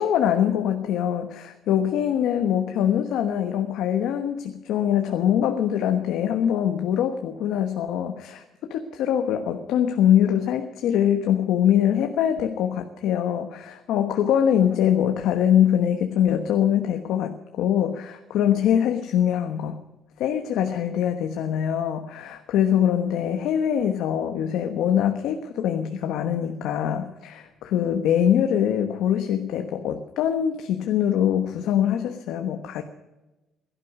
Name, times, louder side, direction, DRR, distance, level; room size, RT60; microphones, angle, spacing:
voice 1, 0.0-19.8 20.2-32.8, left 9 dB, 80° left, 6 dB, 1.2 m, -23 dB
17.0 x 12.0 x 6.5 m, 1.1 s
cardioid pair, 135°, 0 cm